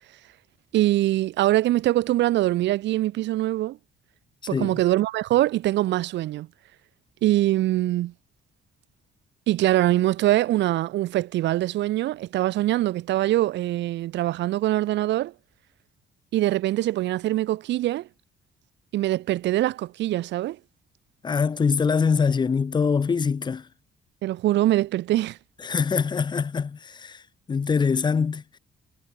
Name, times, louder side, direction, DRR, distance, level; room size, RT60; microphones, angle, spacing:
voice 1, 0.7-3.8 4.5-6.5 7.2-8.1 9.5-15.3 16.3-18.1 18.9-20.6 24.2-25.4, right 15 dB, 80° right, 0.8 m, -23 dB
voice 2, 21.2-23.7 25.6-27.2 27.5-28.6, left 5 dB, 25° left, 0.5 m, -24 dB
cardioid pair, 110°, 18 cm